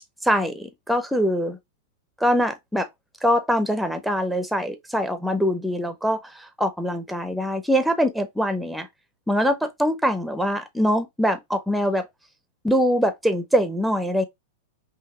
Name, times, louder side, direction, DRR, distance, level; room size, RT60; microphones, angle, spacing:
voice 1, 0.2-1.6 2.2-2.9 3.2-8.9 9.3-12.1 12.6-14.2, equal, ahead, 0.8 m, -23 dB
5.6 x 2.5 x 3.3 m
figure-of-eight pair, 100°, 0 cm